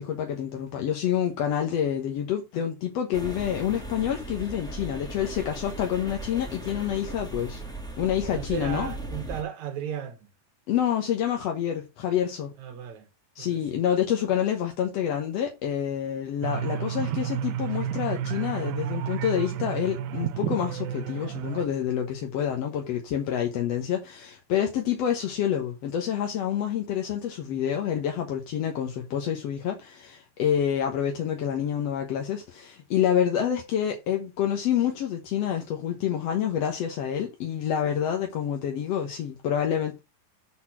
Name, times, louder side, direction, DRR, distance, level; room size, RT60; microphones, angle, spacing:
voice 1, 0.0-7.6 8.0-8.9 10.7-12.5 13.4-40.0, left 9 dB, 60° left, 1.9 m, -28 dB
sound 1, 3.1-9.4, right 1 dB, ahead, 1.0 m, -38 dB
voice 2, 8.3-10.2 12.6-13.1 13.4-13.9, right 9 dB, 65° right, 2.1 m, -35 dB
sound 2, 16.4-21.7, right 10 dB, 85° right, 2.4 m, -31 dB
8.6 x 4.3 x 5.8 m
omnidirectional pair, 3.9 m